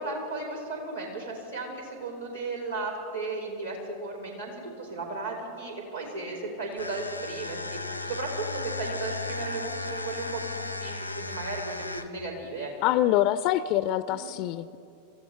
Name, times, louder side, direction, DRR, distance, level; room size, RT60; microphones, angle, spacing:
voice 1, 0.0-12.7 14.1-14.3, right 3 dB, 80° right, 0 dB, 3.9 m, -35 dB
sound 1, 6.7-12.3, left 3 dB, 90° left, 0.8 m, -35 dB
voice 2, 12.8-14.8, left 13 dB, 40° left, 15 dB, 0.3 m, -25 dB
26.5 x 14.5 x 3.4 m, 2.8 s
figure-of-eight pair, 90°, 0 cm